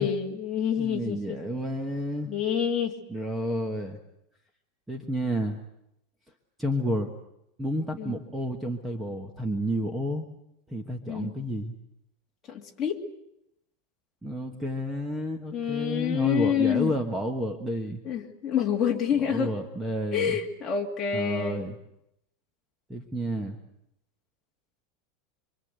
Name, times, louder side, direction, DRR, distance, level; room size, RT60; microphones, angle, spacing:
voice 1, 0.0-1.4 2.3-2.9 8.0-8.2 11.1-11.3 12.5-13.0 15.5-16.9 18.0-19.5 20.1-21.6, left 8 dB, 20° left, -1 dB, 2.7 m, -27 dB
voice 2, 0.8-2.3 3.1-4.0 4.9-5.6 6.6-7.1 7.6-10.2 10.7-11.7 14.2-18.0 19.2-20.4 21.1-21.8 22.9-23.6, equal, 5° right, 3 dB, 1.3 m, -30 dB
25.5 x 25.0 x 8.0 m, 0.82 s
supercardioid pair, 180°, 0 cm